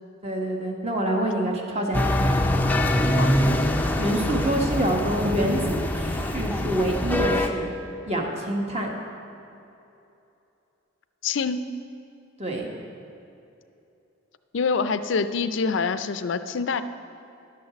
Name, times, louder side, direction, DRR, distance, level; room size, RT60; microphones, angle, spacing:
voice 1, 0.2-2.3 4.0-7.7 8.1-8.9 12.4-12.7, right 1 dB, 30° right, 1 dB, 1.3 m, -26 dB
sound 1, 1.9-7.5, left 1 dB, 10° left, 0.5 m, -24 dB
voice 2, 11.2-11.7 14.5-16.8, left 5 dB, 65° left, 11 dB, 0.5 m, -25 dB
11.5 x 6.5 x 6.9 m, 2.8 s
head